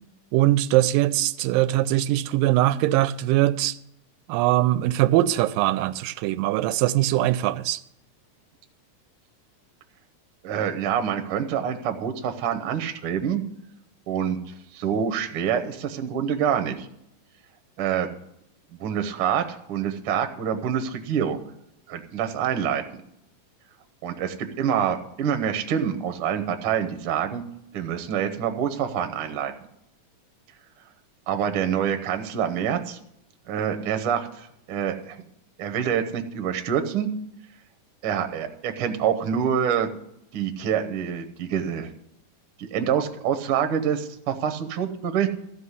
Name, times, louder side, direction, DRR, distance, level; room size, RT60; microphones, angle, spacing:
voice 1, 0.3-3.8 4.3-7.8, right 15 dB, 90° right, 2.3 m, -21 dB
voice 2, 10.4-13.4 14.1-16.9 17.8-18.1 18.8-21.4 21.9-23.0 24.0-27.4 27.7-29.5 31.3-33.0 33.5-35.2 35.6-37.1 38.0-39.9 40.3-41.9 42.7-45.3, right 8 dB, 60° right, 1.5 m, -26 dB
13.5 x 5.8 x 8.2 m
omnidirectional pair, 3.9 m